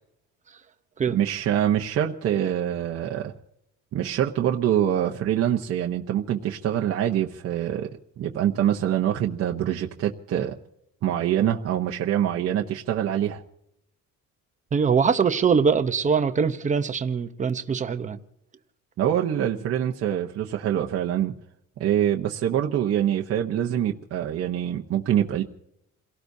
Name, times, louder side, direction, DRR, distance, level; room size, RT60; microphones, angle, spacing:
voice 1, 1.1-3.3 3.9-7.9 8.2-10.6 11.0-13.4 19.0-21.3 21.8-25.4, right 10 dB, 50° right, 1.0 m, -25 dB
voice 2, 14.7-18.2, right 6 dB, 25° right, 0.9 m, -22 dB
28.0 x 18.0 x 2.7 m
cardioid pair, 175°, 31 cm